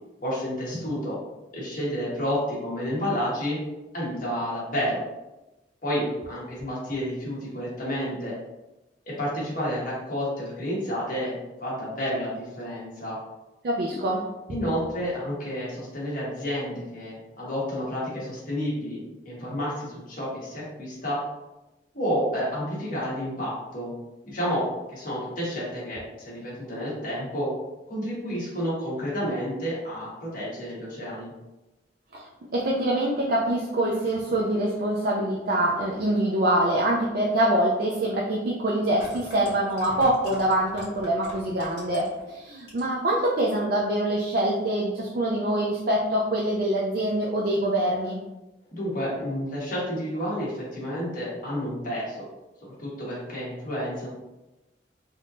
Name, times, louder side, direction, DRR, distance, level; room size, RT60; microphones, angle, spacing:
voice 1, 0.2-1.2 1.5-3.6 3.9-5.0 5.8-8.3 9.0-11.3 11.6-13.2 14.5-21.2 21.9-23.9 24.3-27.5 27.9-31.3 48.7-52.3 52.8-54.1, equal, 50° left, -7 dB, 1.3 m, -30 dB
voice 2, 13.6-14.3 32.1-48.2, right 1 dB, 55° right, -4 dB, 0.4 m, -25 dB
sound 1, 37.8-37.9 38.8-42.2 42.6-43.1 43.4-43.5, left 1 dB, 90° left, 1.2 m, -43 dB
3.6 x 2.7 x 2.5 m, 1.0 s
head